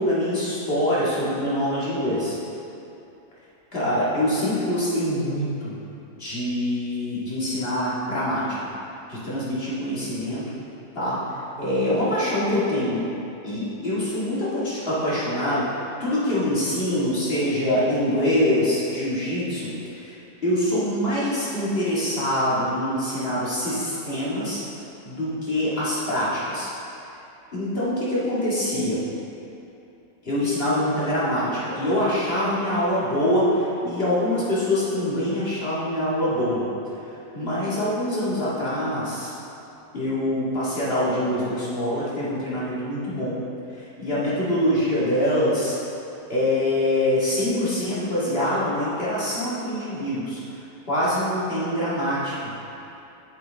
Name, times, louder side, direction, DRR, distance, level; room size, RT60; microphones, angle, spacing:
voice 1, 0.0-2.3 3.7-5.7 6.1-8.6 9.1-10.4 11.0-11.2 11.6-13.1 13.4-20.1 20.4-24.6 25.0-26.7 27.5-29.0 30.2-36.7 37.3-39.3 39.9-43.4 43.7-45.8 46.3-50.4 50.9-52.5, left 1 dB, 35° left, -9 dB, 2.2 m, -24 dB
8.7 x 6.6 x 3.5 m, 2.9 s
omnidirectional pair, 1.7 m